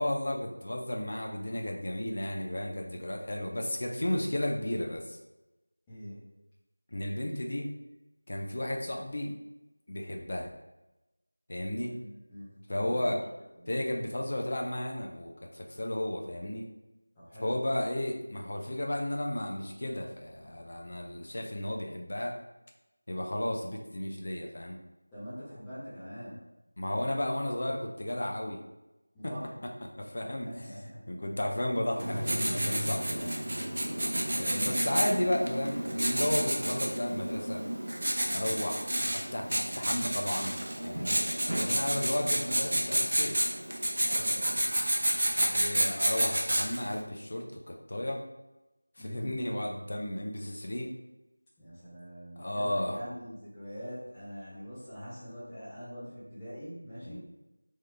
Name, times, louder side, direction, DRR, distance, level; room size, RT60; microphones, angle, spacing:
voice 1, 0.0-5.2 6.9-7.7 8.3-9.3 9.9-10.5 11.5-11.9 12.7-13.2 13.7-16.7 17.4-22.3 23.1-24.8 26.8-28.6 29.2-29.3 29.8-30.5 31.1-33.3 34.3-37.6 38.3-40.6 40.8-41.2 41.6-43.4 45.4-48.2 49.0-50.9 52.4-53.0 57.0-57.2, left 1 dB, 45° left, 1 dB, 0.6 m, -33 dB
voice 2, 5.9-6.2 11.9-13.7 17.1-17.6 25.1-26.5 29.1-29.6 30.4-31.3 34.6-35.2 41.5-41.9 44.0-44.6 49.0-49.3 51.6-57.2, equal, 5° left, -13 dB, 1.0 m, -44 dB
Writing, 32.0-46.9, right 1 dB, 50° right, 0.7 m, -30 dB
3.9 x 3.1 x 3.4 m, 0.98 s
figure-of-eight pair, 175°, 0 cm